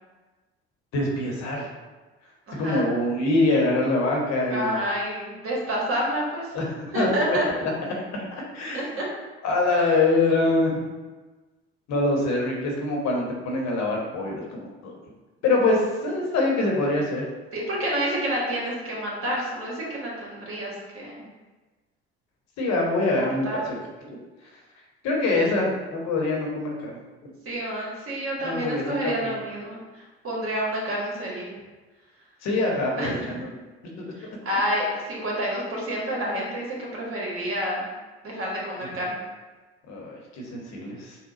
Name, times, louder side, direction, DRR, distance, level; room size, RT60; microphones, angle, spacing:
voice 1, 0.9-1.7 2.5-4.8 6.5-7.7 8.1-8.8 9.4-10.9 11.9-14.9 15.4-17.3 22.6-23.8 24.0-24.2 25.0-27.0 28.4-29.3 32.4-33.5 34.0-34.1 39.9-41.2, left 2 dB, 55° left, -1 dB, 1.1 m, -24 dB
voice 2, 2.5-2.9 4.5-6.5 6.9-7.5 8.7-9.0 17.5-21.3 23.2-23.6 27.4-31.5 33.0-33.3 34.2-37.9 38.2-39.2, equal, 45° right, -4 dB, 1.4 m, -29 dB
4.3 x 2.2 x 3.8 m, 1.2 s
hypercardioid pair, 60°, 32 cm